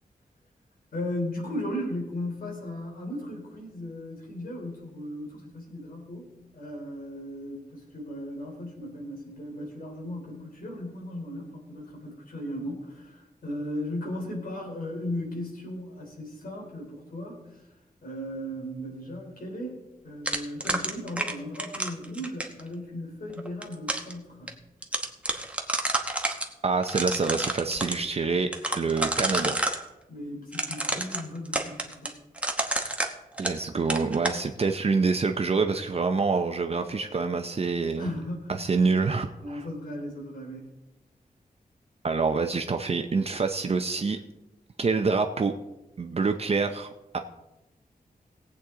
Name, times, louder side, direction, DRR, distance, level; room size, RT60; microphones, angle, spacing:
voice 1, 0.9-17.4 18.0-24.5 30.1-32.1 38.0-38.6 39.4-40.6, left 1 dB, 70° left, 0 dB, 3.6 m, -36 dB
sound 1, 20.3-22.6 23.4-24.1 24.5-24.6 24.8-26.5 26.8-28.0 28.5-29.8 30.5-33.6 33.9-34.4, right 1 dB, 10° right, 1.0 m, -29 dB
voice 2, 26.6-28.5 28.7-29.6 33.4-38.1 38.5-39.6 42.0-44.2 44.8-45.5 46.0-47.2, right 4 dB, 40° right, 6 dB, 0.6 m, -26 dB
18.0 x 8.3 x 3.7 m, 0.99 s
wide cardioid pair, 130°, 15 cm